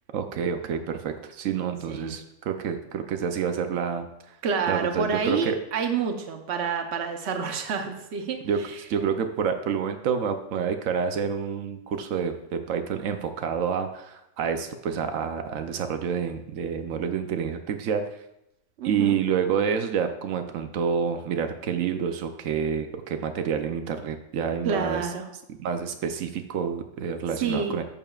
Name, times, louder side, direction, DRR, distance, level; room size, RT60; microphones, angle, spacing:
voice 1, 0.1-4.1 4.7-5.6 8.4-8.6 8.9-18.0 18.8-25.0 25.6-27.8, right 7 dB, 90° right, 7 dB, 1.0 m, -28 dB
voice 2, 4.4-8.4 8.6-8.8 18.8-19.2 24.6-25.3 27.4-27.7, right 6 dB, 60° right, 5 dB, 1.1 m, -28 dB
11.0 x 6.9 x 2.4 m, 0.85 s
omnidirectional pair, 1.3 m